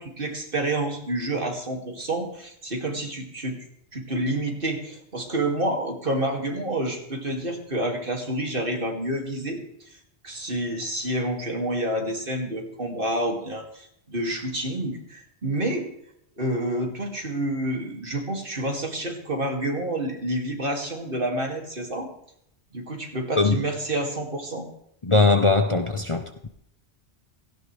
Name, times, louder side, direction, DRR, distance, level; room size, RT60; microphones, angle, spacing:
voice 1, 0.0-3.5 3.9-9.6 10.2-15.9 16.4-22.1 22.7-24.7, right 1 dB, 50° right, 2.6 m, -28 dB
voice 2, 25.0-26.5, left 3 dB, 30° left, 0.9 m, -20 dB
17.0 x 16.0 x 3.3 m
omnidirectional pair, 1.1 m